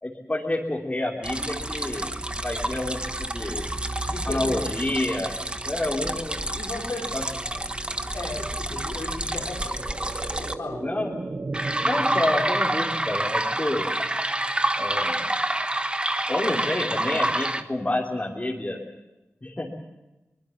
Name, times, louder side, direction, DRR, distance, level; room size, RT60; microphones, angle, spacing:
voice 1, 0.0-3.7 4.2-5.3 5.6-6.5 7.1-7.2 10.8-11.3 11.8-13.9 14.8-15.3 16.3-18.8 19.4-19.7, left 1 dB, 30° left, -3 dB, 3.3 m, -29 dB
sound 1, 1.2-10.5 11.5-17.6, right 1 dB, 20° right, 1.3 m, -28 dB
voice 2, 4.1-4.8 5.9-6.0 6.5-7.1 7.5-7.6 8.1-10.0 10.4-10.8, left 2 dB, 75° left, -1 dB, 4.6 m, -35 dB
sound 2, 6.6-16.4 16.7-16.8, right 3 dB, 45° right, 0.9 m, -40 dB
24.0 x 21.0 x 7.3 m, 1.0 s
cardioid pair, 45°, 5 cm